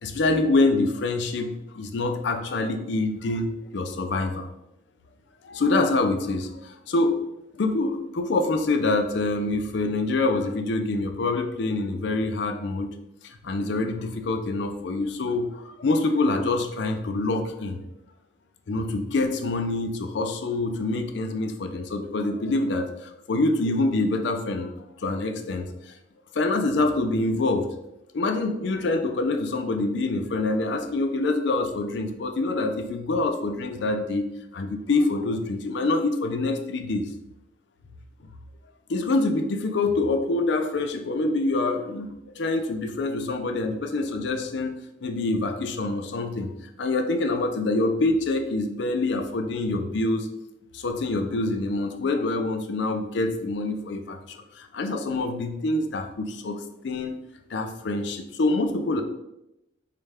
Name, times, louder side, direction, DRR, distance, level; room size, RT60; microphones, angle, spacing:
voice 1, 0.0-4.5 5.4-7.2 7.6-12.9 13.2-17.8 18.7-24.7 25.0-25.9 26.3-27.7 28.1-34.3 34.5-37.1 38.9-44.7 45.0-46.5 46.8-50.3 50.7-57.1 57.5-59.0, left 2 dB, 60° left, 5 dB, 0.4 m, -26 dB
4.5 x 2.1 x 3.3 m, 0.86 s
head